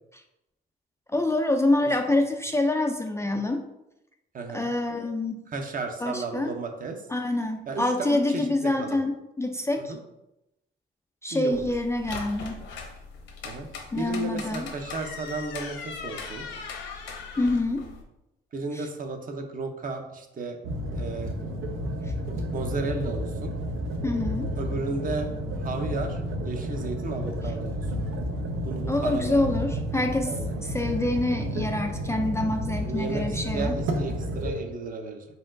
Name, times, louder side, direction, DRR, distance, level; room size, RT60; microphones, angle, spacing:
voice 1, 1.1-3.6 4.5-5.4 6.0-6.5 7.1-9.9 11.2-12.6 13.9-14.7 17.4-17.9 18.7-18.9 24.0-24.5 28.9-30.3 30.6-33.7, left 2 dB, 15° left, 4 dB, 0.3 m, -26 dB
voice 2, 4.3-4.7 5.5-7.0 7.7-9.0 9.8-10.0 11.3-11.7 13.4-13.7 14.0-16.5 18.5-20.6 21.0-21.3 22.3-23.6 24.6-25.3 25.6-27.8 28.6-29.5 30.3-30.8 32.8-35.3, right 3 dB, 45° right, 4 dB, 0.7 m, -34 dB
sound 1, 11.5-18.0, left 4 dB, 75° left, 0.9 m, -39 dB
sound 2, 20.6-34.6, equal, 90° right, 0.6 m, -31 dB
4.2 x 3.7 x 2.5 m, 0.89 s
cardioid pair, 90°, 20 cm